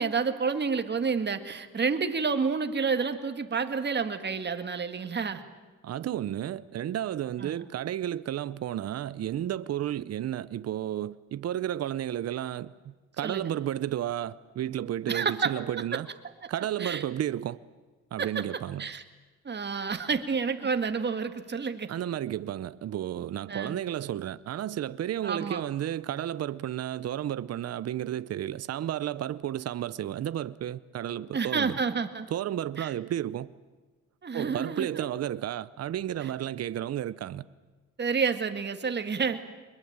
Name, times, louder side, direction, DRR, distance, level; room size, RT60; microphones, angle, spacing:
voice 1, 0.0-5.4 7.4-7.7 13.2-13.6 15.1-15.6 16.8-17.0 18.2-18.5 18.8-19.0 19.4-21.9 23.5-23.8 25.2-25.6 31.3-32.3 32.8-32.9 34.2-35.1 36.2-36.3 38.0-39.4, right 5 dB, 35° right, 2.0 m, -29 dB
voice 2, 5.8-16.1 16.5-17.6 18.1-18.9 21.9-31.8 32.3-33.5 34.3-37.5, right 11 dB, 55° right, 0.7 m, -32 dB
24.0 x 21.5 x 8.8 m
cardioid pair, 90°, 30 cm